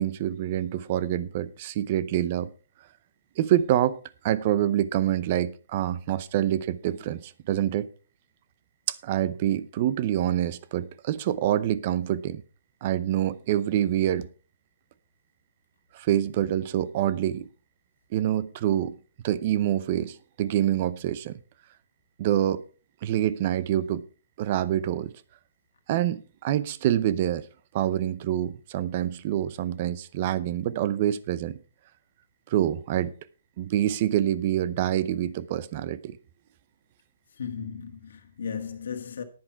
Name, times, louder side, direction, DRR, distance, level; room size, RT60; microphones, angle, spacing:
voice 1, 0.0-2.5 3.4-4.0 4.2-7.9 8.9-12.4 12.8-14.3 15.9-17.5 18.1-19.0 19.2-21.4 22.2-22.6 23.0-24.1 24.4-25.1 25.9-27.5 27.7-31.6 32.5-33.1 33.6-36.2, right 11 dB, 35° right, 0.6 m, -26 dB
voice 2, 37.4-39.2, left 6 dB, 65° left, 1.6 m, -35 dB
10.5 x 10.5 x 4.5 m
hypercardioid pair, 170°, 0 cm